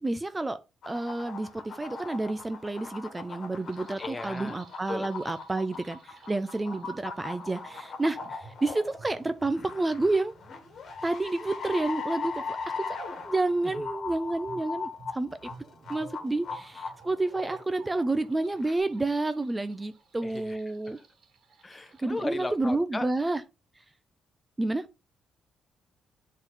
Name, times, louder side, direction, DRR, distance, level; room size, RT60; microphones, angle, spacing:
voice 1, 0.0-10.3 11.0-13.0 13.2-15.5 15.9-21.0 22.0-23.4 24.6-24.9, right 2 dB, 15° right, 0.5 m, -30 dB
sound 1, 0.8-17.8 18.5-18.8, left 4 dB, 55° left, 1.9 m, -39 dB
sound 2, 3.6-22.6, right 3 dB, 60° right, 1.9 m, -54 dB
voice 2, 4.0-4.6 4.9-5.1 13.6-13.9 20.2-20.6 20.9-21.0 21.6-23.1, left 2 dB, 20° left, 0.9 m, -36 dB
7.9 x 3.8 x 3.8 m
cardioid pair, 90°, 0 cm